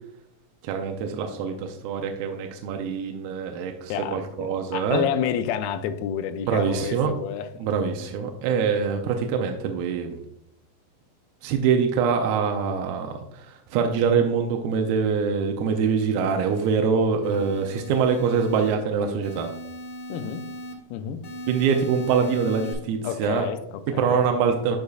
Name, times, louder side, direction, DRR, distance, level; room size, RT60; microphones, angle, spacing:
voice 1, 0.6-5.0 6.5-7.2 7.6-10.2 11.4-19.5 21.5-23.5 24.0-24.8, right 6 dB, 85° right, 2.5 m, -24 dB
voice 2, 3.9-7.7 20.1-20.5 20.9-21.3 23.0-24.2, left 9 dB, 80° left, 2.3 m, -30 dB
sound 1, 15.6-16.7 17.2-18.7 19.2-20.7 21.2-22.7, equal, 55° left, 2.6 m, -39 dB
9.5 x 5.3 x 2.4 m
omnidirectional pair, 4.4 m